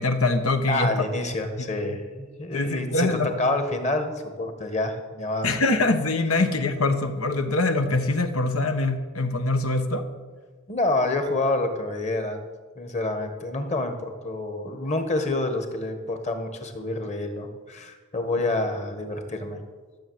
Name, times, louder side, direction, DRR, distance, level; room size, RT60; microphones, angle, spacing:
voice 1, 0.0-0.9 1.6-1.7 2.5-3.3 5.4-10.0, left 2 dB, 90° left, 7 dB, 1.2 m, -23 dB
voice 2, 0.7-5.5 10.7-12.5 12.8-19.6, left 2 dB, 35° left, 6 dB, 1.5 m, -28 dB
13.5 x 7.2 x 8.0 m, 1.5 s
head